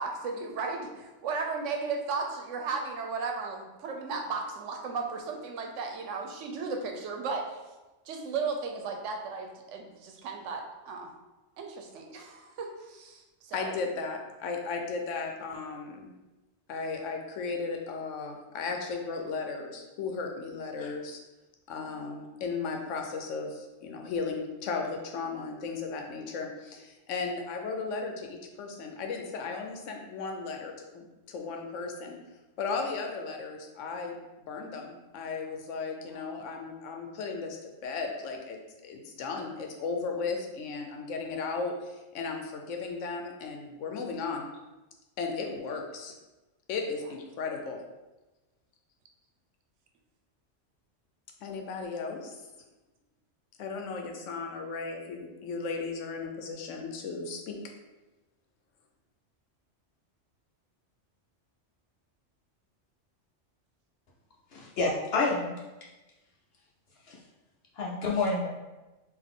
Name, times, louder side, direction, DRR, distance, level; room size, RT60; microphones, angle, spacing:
voice 1, 0.0-7.6 8.1-11.1 11.6-13.7 20.8-20.9 21.8-22.1, right 4 dB, 80° right, 3 dB, 1.0 m, -35 dB
voice 2, 13.5-16.1 16.7-21.2 21.7-32.2 32.6-34.2 34.4-44.5 45.2-46.2 46.7-47.8 51.4-52.4 53.6-57.6, left 4 dB, 90° left, 3 dB, 1.0 m, -35 dB
voice 3, 64.5-65.5 67.1-67.2 67.8-68.5, left 3 dB, 65° left, -3 dB, 0.8 m, -28 dB
3.8 x 2.6 x 3.6 m, 1.1 s
omnidirectional pair, 1.2 m